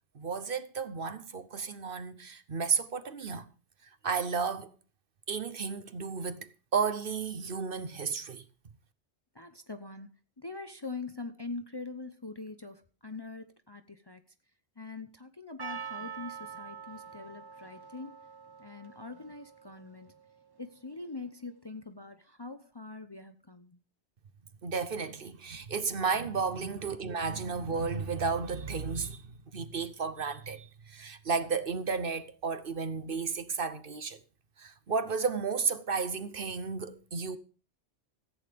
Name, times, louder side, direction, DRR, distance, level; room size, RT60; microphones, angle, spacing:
voice 1, 0.1-3.4 4.0-4.7 5.3-8.4 24.6-29.2 29.5-34.2 34.6-37.4, right 5 dB, 55° right, 1.1 m, -33 dB
voice 2, 9.3-10.1 10.4-14.2 14.8-18.2 18.6-20.1 20.6-23.8 26.6-26.7, left 3 dB, 25° left, 0.7 m, -43 dB
Percussion, 15.6-20.6, right 6 dB, 25° right, 0.7 m, -45 dB
14.5 x 8.8 x 5.2 m
omnidirectional pair, 1.2 m